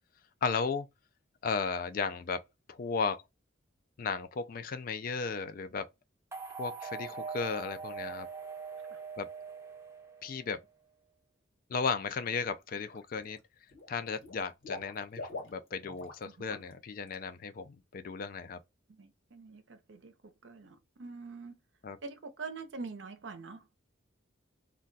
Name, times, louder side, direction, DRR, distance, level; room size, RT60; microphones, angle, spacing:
voice 1, 0.4-0.9 1.4-3.2 4.0-5.9 6.6-8.3 9.2-9.3 10.2-10.6 11.7-13.4 13.9-18.6 21.8-22.0, left 5 dB, 45° left, 0.3 m, -35 dB
sound 1, 6.3-10.5, right 5 dB, 15° right, 0.6 m, -42 dB
Water / Liquid, 12.1-12.4 12.7-13.4 13.7-16.2 16.5-16.7 17.1-17.2, left 2 dB, 85° left, 1.1 m, -45 dB
voice 2, 18.9-21.6 22.0-23.7, right 4 dB, 65° right, 0.6 m, -45 dB
2.3 x 2.2 x 3.8 m
head